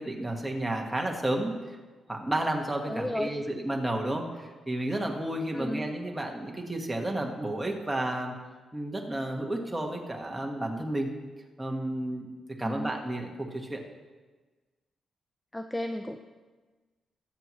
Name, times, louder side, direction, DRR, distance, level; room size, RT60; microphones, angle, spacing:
voice 1, 0.0-1.8 2.1-8.3 8.7-11.1 11.6-12.3 12.6-13.8, right 1 dB, 10° right, 0 dB, 1.6 m, -32 dB
voice 2, 2.9-3.4 5.5-5.9 12.6-13.0 15.5-16.2, left 1 dB, 10° left, 6 dB, 0.5 m, -33 dB
21.5 x 7.7 x 3.2 m, 1.3 s
wide cardioid pair, 130°, 0 cm